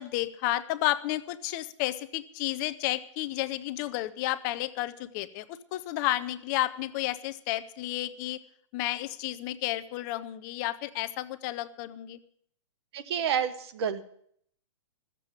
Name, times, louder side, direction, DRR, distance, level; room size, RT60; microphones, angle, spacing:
voice 1, 0.0-8.4 8.7-12.2, left 15 dB, 40° left, 14 dB, 0.7 m, -32 dB
voice 2, 12.9-14.1, right 8 dB, 55° right, 11 dB, 1.3 m, -29 dB
14.5 x 7.6 x 9.0 m, 0.64 s
hypercardioid pair, 135°, 16 cm